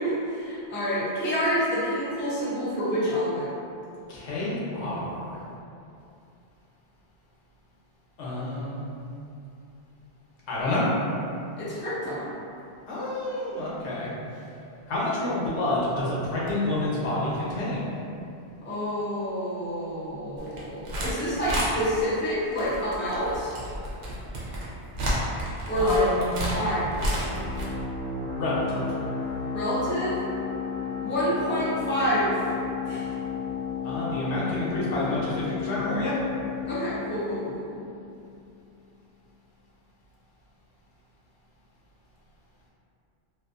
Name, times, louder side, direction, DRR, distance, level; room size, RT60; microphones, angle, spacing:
voice 1, 0.0-3.5 11.6-12.3 18.6-23.5 25.7-26.1 26.4-27.2 29.5-30.2 31.0-32.5 32.8-33.2 36.7-37.8, equal, 15° left, -10 dB, 0.4 m, -28 dB
voice 2, 4.1-5.4 8.2-9.0 10.5-10.9 12.9-14.1 14.9-17.9 25.8-26.6 28.4-28.9 33.8-36.1, left 1 dB, 90° left, -7 dB, 1.0 m, -29 dB
sound 1, 20.4-21.1 21.4-21.7 22.5-27.6, equal, 75° right, 0.9 m, -31 dB
sound 2, 27.0-38.3, left 6 dB, 65° left, 1.0 m, -33 dB
2.5 x 2.4 x 2.4 m, 2.6 s
omnidirectional pair, 1.1 m